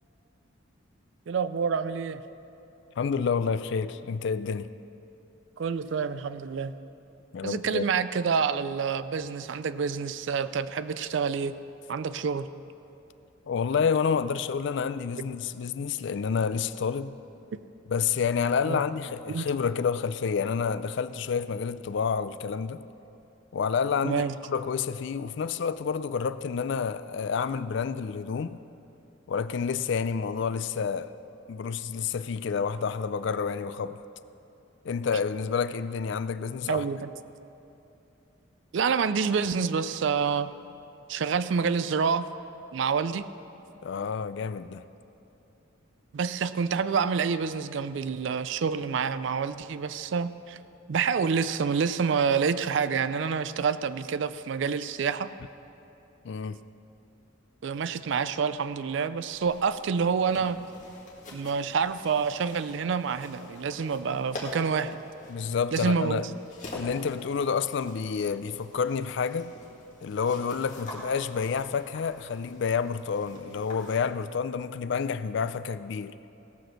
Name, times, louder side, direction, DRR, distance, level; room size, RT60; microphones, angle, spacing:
voice 1, 1.3-2.2 5.6-6.7 7.4-11.6 11.9-12.5 18.7-18.8 19.3-19.5 24.0-24.3 36.7-37.1 38.7-40.5 41.1-42.3 42.7-43.2 46.1-50.6 50.9-55.3 57.6-60.6 61.3-65.0 65.7-66.2, right 6 dB, 65° right, 0.4 m, -27 dB
voice 2, 3.0-4.7 7.3-7.9 13.5-17.2 17.9-22.8 23.5-24.2 24.5-28.6 29.3-31.1 31.5-34.0 34.8-36.8 43.8-44.8 56.2-56.6 65.3-66.3 66.7-69.5 70.0-76.2, left 6 dB, 60° left, 0.4 m, -29 dB
sound 1, 59.3-74.0, left 1 dB, 40° left, 2.0 m, -46 dB
17.0 x 6.2 x 6.4 m
head